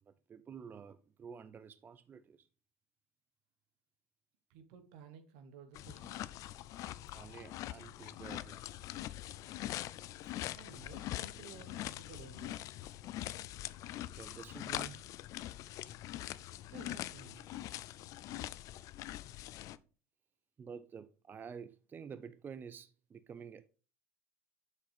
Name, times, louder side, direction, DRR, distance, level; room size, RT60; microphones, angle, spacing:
voice 1, 0.0-2.5 7.1-8.8 10.4-10.6 14.2-15.1 20.6-23.7, right 6 dB, 30° right, 0.4 m, -50 dB
voice 2, 4.5-6.2 10.5-12.6 16.7-17.5, right 6 dB, 65° right, 1.2 m, -54 dB
sound 1, 5.7-19.8, left 14 dB, 55° left, 0.4 m, -43 dB
7.5 x 6.7 x 3.5 m
hypercardioid pair, 75°, 7 cm